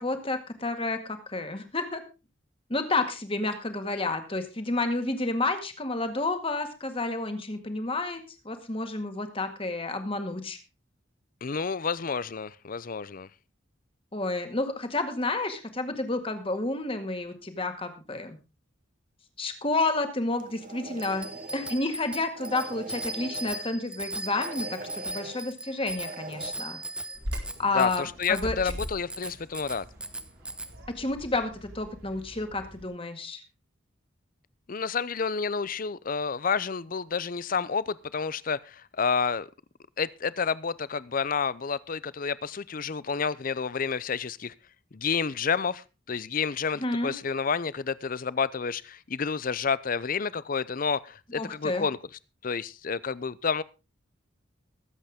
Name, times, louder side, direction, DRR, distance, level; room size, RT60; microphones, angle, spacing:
voice 1, 0.0-2.0 2.7-10.6 14.1-18.4 19.4-21.3 21.5-26.8 27.6-28.6 31.0-33.4 46.8-47.1 51.4-51.9, left 2 dB, 30° left, 1.9 m, -30 dB
voice 2, 11.4-13.3 27.7-29.8 34.7-39.5 40.0-44.5 44.9-52.0 52.4-53.6, left 5 dB, 45° left, 0.6 m, -30 dB
sound 1, 20.3-21.8 22.3-23.7 24.2-25.4 26.0-26.5, right 3 dB, 45° right, 1.0 m, -42 dB
Bicycle bell, 21.0-30.7, right 1 dB, 5° right, 0.8 m, -38 dB
Bird vocalization bird call bird song, 27.1-32.8, equal, 85° right, 4.7 m, -41 dB
22.0 x 8.1 x 3.6 m
head